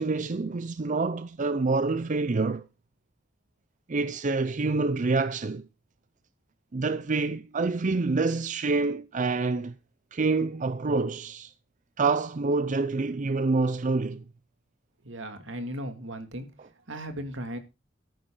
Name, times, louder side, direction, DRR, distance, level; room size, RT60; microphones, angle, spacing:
voice 1, 0.0-2.6 3.9-5.6 6.7-9.8 10.1-11.5 12.0-14.2, right 3 dB, 40° right, 0.5 m, -27 dB
voice 2, 15.0-16.5 16.9-17.6, equal, 75° right, 2.4 m, -36 dB
13.5 x 9.6 x 3.8 m
head